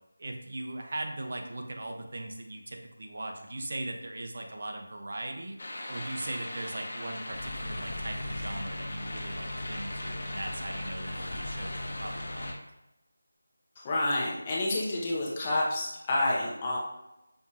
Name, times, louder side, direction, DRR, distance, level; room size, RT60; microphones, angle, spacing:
voice 1, 0.2-5.6 5.9-12.6, right 1 dB, 50° right, 3 dB, 0.5 m, -39 dB
sound 1, 5.6-12.5, left 1 dB, 50° left, 0.7 m, -40 dB
sound 2, 7.3-12.5, left 1 dB, 85° left, 0.6 m, -39 dB
voice 2, 13.8-16.8, left 2 dB, 15° left, -4 dB, 0.5 m, -29 dB
5.3 x 2.4 x 3.0 m, 0.91 s
figure-of-eight pair, 175°, 0 cm